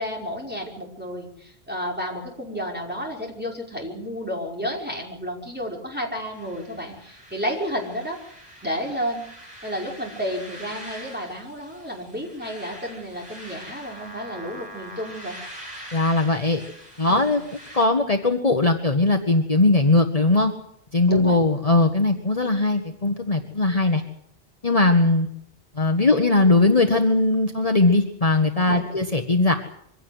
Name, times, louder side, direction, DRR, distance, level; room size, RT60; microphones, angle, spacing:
voice 1, 0.0-8.2 8.6-9.3 9.6-15.4 17.1-17.4 21.1-21.4 28.7-29.0, equal, 10° right, -2 dB, 5.5 m, -31 dB
sound 1, 6.3-17.8, equal, 40° right, 7.8 m, -43 dB
voice 2, 15.9-16.6 17.0-17.4 17.7-20.5 20.9-24.0 24.6-25.3 25.8-29.5, left 2 dB, 35° left, 4 dB, 1.6 m, -19 dB
24.0 x 17.0 x 8.1 m, 0.73 s
omnidirectional pair, 1.0 m